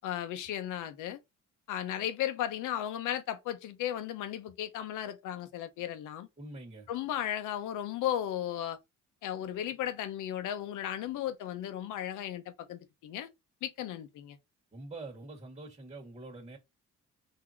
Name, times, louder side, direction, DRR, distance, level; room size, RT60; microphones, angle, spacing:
voice 1, 0.0-1.2 1.7-6.3 6.9-8.8 9.2-13.3 13.6-14.4, left 11 dB, 90° left, 0.8 m, -35 dB
voice 2, 6.4-6.9 14.7-16.6, right 2 dB, 20° right, 1.7 m, -45 dB
4.0 x 2.9 x 4.3 m
cardioid pair, 90°, 30 cm